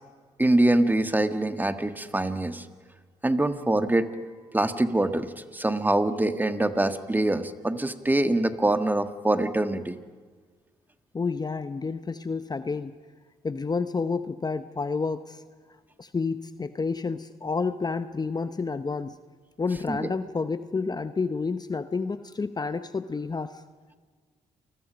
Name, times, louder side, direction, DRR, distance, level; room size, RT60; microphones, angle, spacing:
voice 1, 0.4-2.6 3.2-4.1 4.5-10.0 19.9-20.1, right 1 dB, 10° right, 9 dB, 1.6 m, -24 dB
voice 2, 11.1-13.0 13.4-15.4 16.0-19.2 19.6-23.6, left 4 dB, 30° left, 11 dB, 0.9 m, -30 dB
28.5 x 20.5 x 5.3 m, 1.5 s
supercardioid pair, 55°, 15 cm